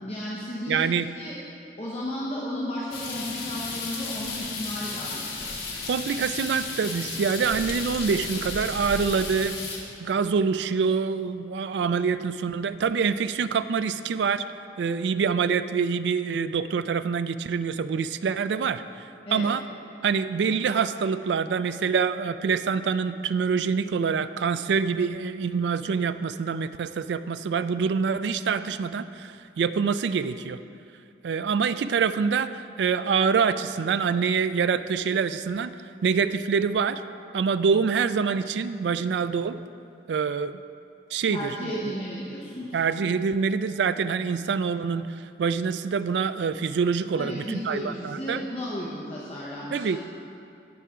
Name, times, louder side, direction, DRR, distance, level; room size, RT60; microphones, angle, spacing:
voice 1, 0.0-1.4 1.8-5.5 19.3-19.5 41.3-42.8 47.2-50.0, left 1 dB, 35° left, -7 dB, 1.0 m, -34 dB
voice 2, 0.7-1.1 5.9-9.6 10.0-14.5 14.8-18.8 19.3-19.6 20.0-30.6 31.2-35.7 36.0-37.0 37.3-39.6 40.1-40.6 41.1-41.9 42.7-48.4 49.7-50.0, right 5 dB, 85° right, 13 dB, 0.3 m, -25 dB
sound 1, 2.9-9.8, left 3 dB, 70° left, 1.7 m, -34 dB
16.5 x 5.7 x 3.7 m, 2.5 s
head